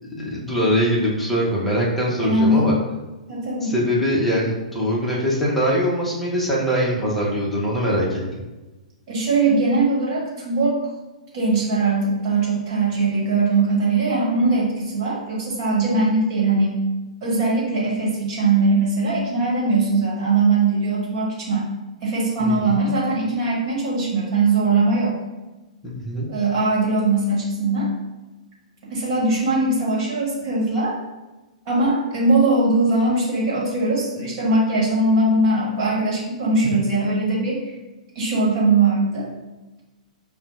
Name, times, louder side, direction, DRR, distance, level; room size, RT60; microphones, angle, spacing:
voice 1, 0.0-2.7 3.6-8.2 22.4-22.8 25.8-26.3, equal, 5° left, -6 dB, 0.8 m, -22 dB
voice 2, 2.2-2.7 3.3-3.7 9.1-10.8 11.3-16.8 17.2-21.6 22.0-25.2 26.3-27.9 28.9-31.0 31.6-37.6 38.1-39.3, right 3 dB, 35° right, -6 dB, 1.5 m, -20 dB
5.2 x 2.3 x 2.5 m, 1.1 s
figure-of-eight pair, 115°, 4 cm